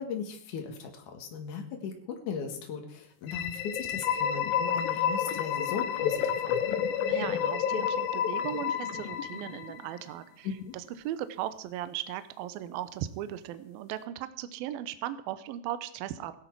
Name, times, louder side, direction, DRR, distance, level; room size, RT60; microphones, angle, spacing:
voice 1, 0.0-6.7 10.4-10.7, left 6 dB, 55° left, 4 dB, 2.5 m, -38 dB
sound 1, 3.2-10.0, left 8 dB, 85° left, 2.0 m, -30 dB
voice 2, 7.0-10.5 10.7-16.3, right 12 dB, 85° right, 12 dB, 2.1 m, -37 dB
17.0 x 11.0 x 4.6 m, 0.65 s
omnidirectional pair, 5.4 m